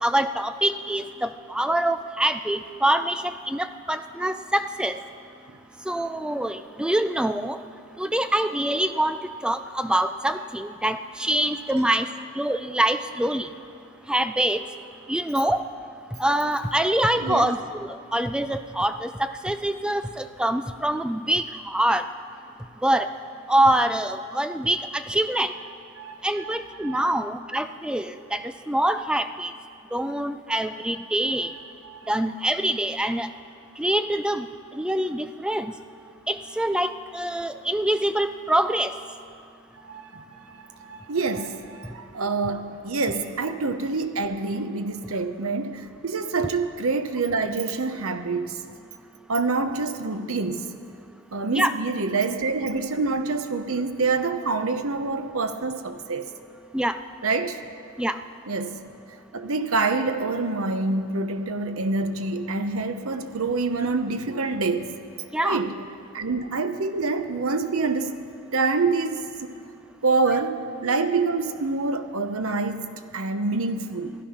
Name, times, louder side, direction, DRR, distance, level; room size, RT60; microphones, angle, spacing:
voice 1, 0.0-5.0 5.9-7.6 8.0-9.2 9.4-12.1 12.4-13.5 14.1-14.6 15.1-15.7 16.2-17.6 18.1-22.0 22.8-23.1 23.5-25.5 26.2-28.4 28.7-29.5 29.9-31.5 32.1-33.3 33.8-34.5 34.8-35.7 36.3-38.9 51.5-51.7 56.7-57.0 58.0-58.2 65.3-65.6, right 1 dB, 5° right, 10 dB, 0.3 m, -25 dB
voice 2, 17.2-17.5 25.6-25.7 26.0-27.2 31.4-32.2 39.9-48.6 49.3-50.7 51.3-56.3 57.2-57.6 58.5-58.8 59.3-64.9 65.4-65.8 66.1-68.2 68.5-69.5 70.0-74.2, right 3 dB, 75° right, 8 dB, 0.9 m, -27 dB
16.0 x 11.5 x 5.8 m, 2.4 s
head